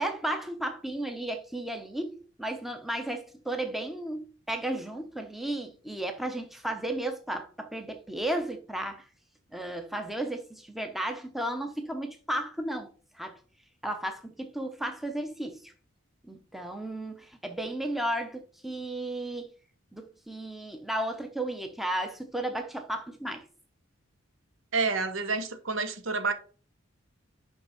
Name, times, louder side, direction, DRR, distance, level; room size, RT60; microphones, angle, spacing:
voice 1, 0.0-9.0 9.5-12.9 13.2-13.4 13.8-15.7 16.2-19.5 19.9-23.5, right 1 dB, ahead, 0.7 m, -34 dB
voice 2, 24.7-26.3, right 4 dB, 70° right, 0.9 m, -29 dB
5.4 x 5.4 x 4.9 m
head